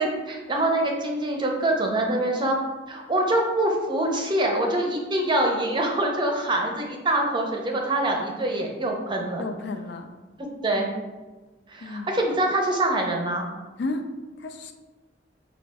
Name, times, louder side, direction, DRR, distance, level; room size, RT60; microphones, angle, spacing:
voice 1, 0.0-2.6 2.9-9.4 10.4-10.9 11.7-13.4, right 1 dB, 25° right, 1 dB, 0.6 m, -25 dB
voice 2, 9.4-10.1 11.8-12.1 13.8-14.1 14.4-14.7, left 2 dB, 65° left, 6 dB, 0.4 m, -32 dB
4.9 x 2.4 x 3.4 m, 1.2 s
head